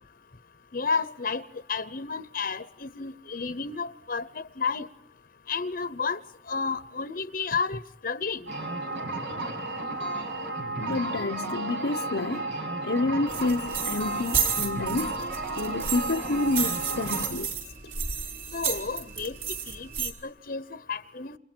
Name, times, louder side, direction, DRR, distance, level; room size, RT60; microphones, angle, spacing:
voice 1, 0.7-1.4 1.7-4.9 5.5-6.2 6.5-8.5 18.5-19.3 19.7-21.4, left 5 dB, 55° left, 0.9 m, -31 dB
sound 1, 8.5-17.3, right 2 dB, 85° right, 7.6 m, -33 dB
voice 2, 10.8-12.5 12.8-15.2 15.6-17.6, left 2 dB, 80° left, 0.9 m, -29 dB
sound 2, 13.3-20.1, right 7 dB, 55° right, 4.6 m, -32 dB
29.5 x 28.5 x 4.5 m
head